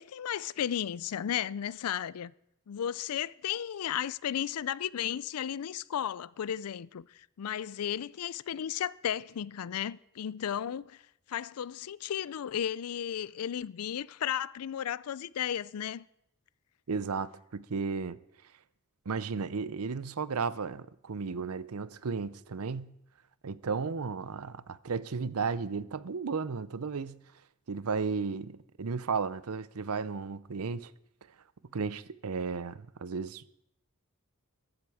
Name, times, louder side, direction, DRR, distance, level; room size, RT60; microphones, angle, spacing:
voice 1, 0.0-2.3 2.7-11.0 11.3-16.1, left 9 dB, 90° left, 0.4 m, -34 dB
voice 2, 16.9-18.2 19.1-22.9 23.4-27.2 27.7-30.9 31.7-33.5, right 5 dB, 85° right, 0.6 m, -34 dB
15.0 x 12.0 x 4.9 m
head